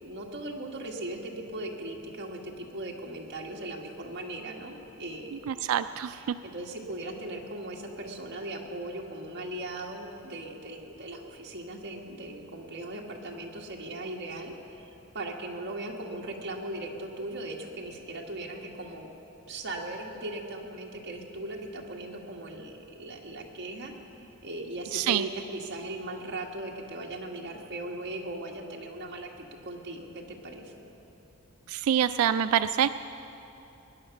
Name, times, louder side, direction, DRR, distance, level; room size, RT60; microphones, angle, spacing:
voice 1, 0.0-5.7 6.1-14.8 15.1-19.1 19.5-30.8, right 1 dB, 50° right, -1 dB, 1.8 m, -38 dB
voice 2, 5.5-6.4 24.9-25.2 31.7-32.9, right 9 dB, 70° right, 12 dB, 0.3 m, -26 dB
20.5 x 10.5 x 5.9 m, 2.9 s
head